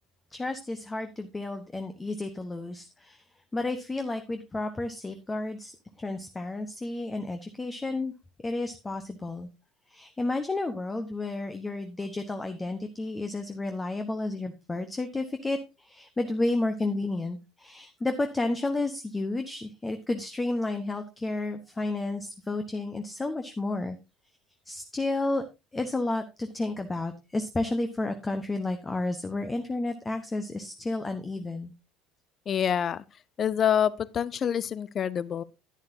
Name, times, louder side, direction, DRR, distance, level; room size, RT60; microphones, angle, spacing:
voice 1, 0.3-3.2 3.5-8.1 8.4-9.5 9.9-24.0 24.7-25.4 25.7-31.7, left 2 dB, 15° left, 1.1 m, -31 dB
voice 2, 32.5-33.0 33.4-35.4, left 9 dB, 35° left, 0.6 m, -26 dB
11.0 x 11.0 x 2.7 m
figure-of-eight pair, 60°, 0 cm